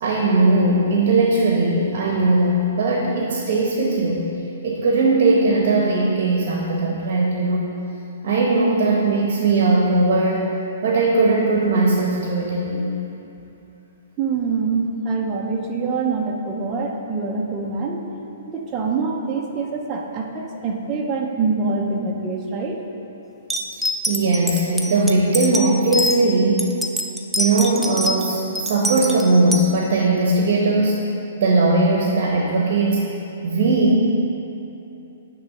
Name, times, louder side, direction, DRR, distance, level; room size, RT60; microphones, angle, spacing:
voice 1, 0.0-4.2 4.6-7.6 8.2-10.5 10.8-12.9 24.1-26.7 27.4-30.9 31.4-33.0 33.4-34.1, right 2 dB, 50° right, -1 dB, 1.0 m, -19 dB
voice 2, 14.2-18.0 18.5-22.8, right 4 dB, 20° right, -1 dB, 0.7 m, -25 dB
sound 1, 23.5-26.2 26.6-28.2 28.5-29.6, equal, ahead, 0.3 m, -24 dB
9.3 x 3.1 x 6.4 m, 2.9 s
hypercardioid pair, 165°, 0 cm